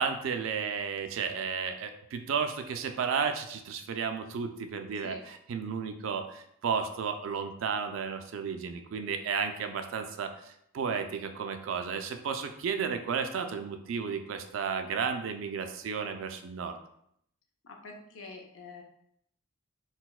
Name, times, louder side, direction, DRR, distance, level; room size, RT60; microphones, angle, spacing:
voice 1, 0.0-16.8, right 6 dB, 70° right, 7 dB, 0.3 m, -33 dB
voice 2, 17.6-18.8, left 3 dB, 75° left, 2 dB, 0.6 m, -46 dB
4.0 x 2.2 x 2.3 m, 0.72 s
head